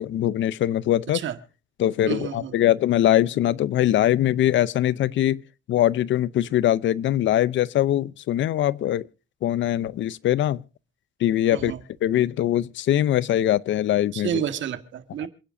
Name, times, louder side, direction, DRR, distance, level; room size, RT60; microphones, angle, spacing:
voice 1, 0.0-1.2 1.8-5.4 5.7-9.1 9.4-10.6 11.2-11.7 12.0-14.4, left 12 dB, 70° left, 0.7 m, -22 dB
voice 2, 2.1-2.5 11.5-11.8 14.1-15.3, right 10 dB, 70° right, 1.8 m, -29 dB
27.5 x 10.0 x 2.7 m
cardioid pair, 90°, 20 cm